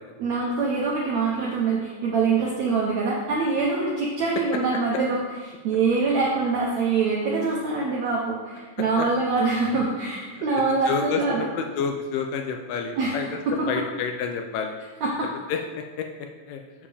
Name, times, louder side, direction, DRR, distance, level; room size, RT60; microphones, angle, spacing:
voice 1, 0.2-5.2 5.6-11.5 13.0-13.2 13.5-13.8 15.0-15.3, right 4 dB, 75° right, -4 dB, 1.6 m, -24 dB
voice 2, 10.9-13.3 13.7-14.8 15.5-15.6 16.5-16.6, left 6 dB, 80° left, 4 dB, 2.1 m, -28 dB
7.2 x 7.0 x 3.4 m, 1.4 s
omnidirectional pair, 4.2 m